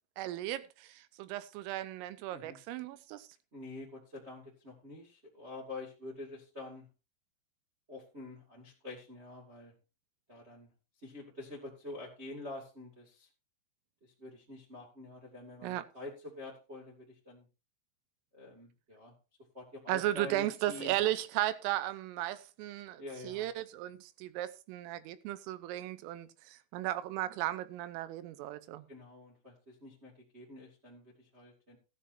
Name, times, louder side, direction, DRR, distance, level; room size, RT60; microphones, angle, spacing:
voice 1, 0.2-3.3 15.6-15.8 19.9-28.9, right 14 dB, 85° right, 3.4 m, -36 dB
voice 2, 3.5-6.9 7.9-9.7 10.3-10.7 11.0-13.3 14.2-17.5 18.3-19.1 19.5-21.0 23.0-23.5 28.9-31.8, left 2 dB, 60° right, 0.6 m, -47 dB
16.0 x 9.9 x 2.7 m
omnidirectional pair, 5.8 m